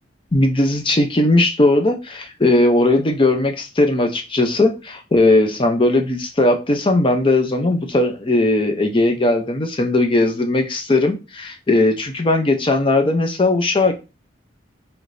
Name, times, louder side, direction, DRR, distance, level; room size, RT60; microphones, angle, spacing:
voice 1, 0.3-13.9, left 2 dB, 25° left, 5 dB, 0.5 m, -18 dB
4.9 x 3.2 x 2.6 m, 0.28 s
head